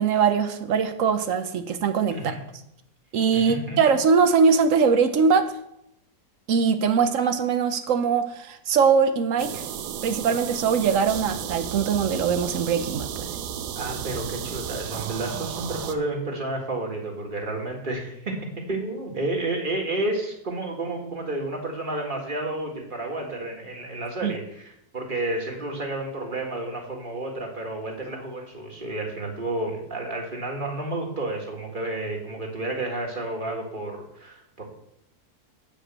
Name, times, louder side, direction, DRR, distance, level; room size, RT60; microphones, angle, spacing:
voice 1, 0.0-2.3 3.1-5.4 6.5-9.6 10.0-13.3 24.2-24.4, right 6 dB, 60° right, 9 dB, 1.1 m, -22 dB
voice 2, 2.1-2.4 3.3-3.8 13.8-18.4 18.7-34.7, right 2 dB, 30° right, 1 dB, 1.8 m, -31 dB
sound 1, 9.4-15.9, right 9 dB, 85° right, 1.3 m, -33 dB
8.8 x 4.9 x 7.4 m, 0.79 s
omnidirectional pair, 1.8 m